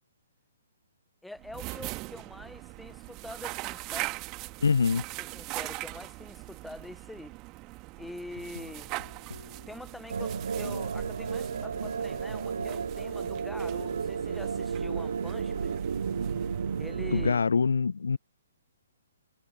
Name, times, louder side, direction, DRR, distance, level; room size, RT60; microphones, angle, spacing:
voice 1, 1.2-4.2 5.2-7.4 8.0-8.9 9.7-15.8 16.8-17.4, left 1 dB, 5° left, 0.8 m, -45 dB
sound 1, 1.4-17.5, right 23 dB, 25° right, 2.1 m, -41 dB
voice 2, 4.6-5.0 17.1-18.2, left 5 dB, 70° left, 0.4 m, -24 dB
sound 2, 8.1-13.7, left 1 dB, 90° left, 6.2 m, -48 dB
sound 3, 10.1-17.3, right 6 dB, 65° right, 0.7 m, -32 dB
figure-of-eight pair, 125°, 0 cm